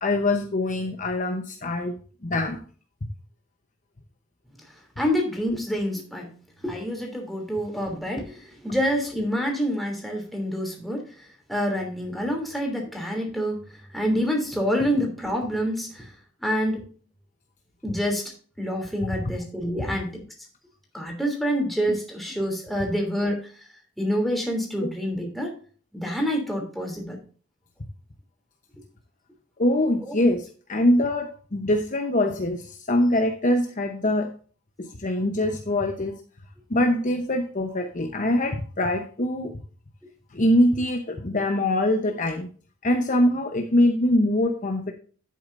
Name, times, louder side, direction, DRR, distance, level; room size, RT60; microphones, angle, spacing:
voice 1, 0.0-2.6 21.9-22.0 24.8-24.9 29.6-34.3 34.8-36.2 36.7-39.5 40.3-42.5 42.8-44.9, left 1 dB, 35° left, 4 dB, 0.9 m, -23 dB
voice 2, 5.0-6.3 6.6-11.0 11.5-13.6 13.9-16.1 16.4-16.8 17.8-18.2 18.6-20.2 20.9-23.5 24.0-25.5 25.9-27.2 30.0-30.1, equal, ahead, 0 dB, 3.0 m, -27 dB
10.5 x 8.7 x 2.6 m, 0.40 s
head